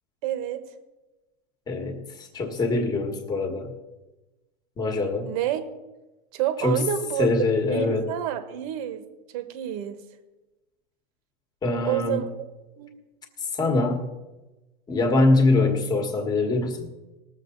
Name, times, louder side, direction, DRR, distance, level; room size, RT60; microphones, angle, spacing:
voice 1, 0.2-0.6 5.2-5.6 6.3-7.3 7.7-9.0 9.3-10.0 11.8-12.5 12.8-12.9, right 11 dB, 40° right, 10 dB, 1.3 m, -28 dB
voice 2, 1.7-3.7 4.8-5.3 6.6-6.8 7.2-8.1 11.6-12.2 13.5-14.1 14.9-16.9, left 2 dB, 15° left, 3 dB, 1.6 m, -23 dB
20.5 x 7.3 x 4.0 m, 1.1 s
supercardioid pair, 160°, 31 cm